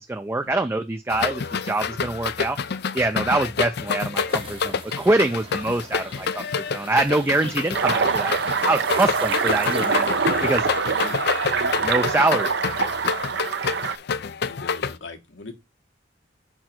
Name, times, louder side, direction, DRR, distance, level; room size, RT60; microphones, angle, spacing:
voice 1, 0.0-2.6 2.9-8.3 8.6-10.1 10.4-10.7 11.8-12.5, right 2 dB, 15° right, 0.4 m, -24 dB
sound 1, 1.1-14.9, left 6 dB, 60° left, 0.5 m, -28 dB
sound 2, 4.3-10.6, right 4 dB, 30° right, 0.9 m, -41 dB
sound 3, 7.7-14.0, right 5 dB, 65° right, 0.7 m, -24 dB
voice 2, 10.9-11.2 14.5-15.5, left 3 dB, 80° left, 1.5 m, -40 dB
5.2 x 4.4 x 5.9 m
head